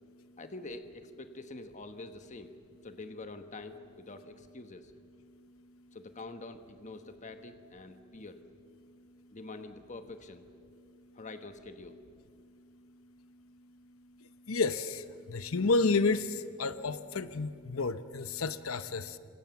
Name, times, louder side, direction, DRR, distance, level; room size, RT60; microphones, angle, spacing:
voice 1, 0.4-2.5 2.8-4.9 5.9-8.4 9.3-10.4 11.1-12.0, left 2 dB, 35° left, 7 dB, 1.2 m, -46 dB
voice 2, 14.2-19.2, left 3 dB, 85° left, 12 dB, 0.8 m, -31 dB
28.5 x 26.0 x 7.1 m, 2.2 s
head